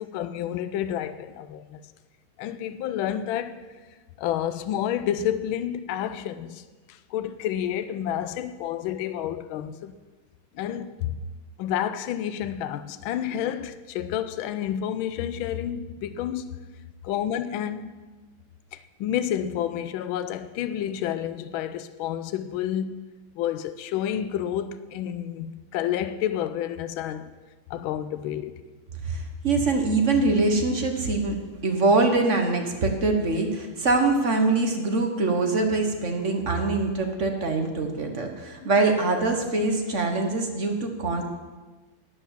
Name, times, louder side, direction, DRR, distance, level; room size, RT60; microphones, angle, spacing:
voice 1, 0.0-1.8 2.4-3.7 4.2-10.0 10.5-11.2 11.6-16.6 17.0-17.9 18.7-23.0 23.4-27.3 27.7-28.7 38.6-38.7, left 10 dB, 75° left, 1.4 m, -30 dB
voice 2, 29.0-41.2, right 3 dB, 40° right, 1.3 m, -24 dB
11.5 x 9.5 x 7.4 m
omnidirectional pair, 2.4 m